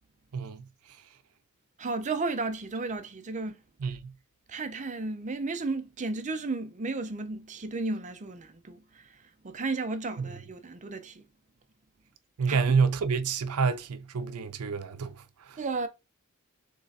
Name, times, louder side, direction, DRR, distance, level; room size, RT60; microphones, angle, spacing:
voice 1, 0.3-0.6 3.8-4.1 10.2-10.3 12.4-15.2 15.5-15.6, right 5 dB, 90° right, 0.5 m, -28 dB
voice 2, 1.8-4.0 4.5-11.2 12.5-12.7 15.6-15.9, right 3 dB, 35° right, 0.5 m, -34 dB
3.8 x 3.3 x 4.0 m
head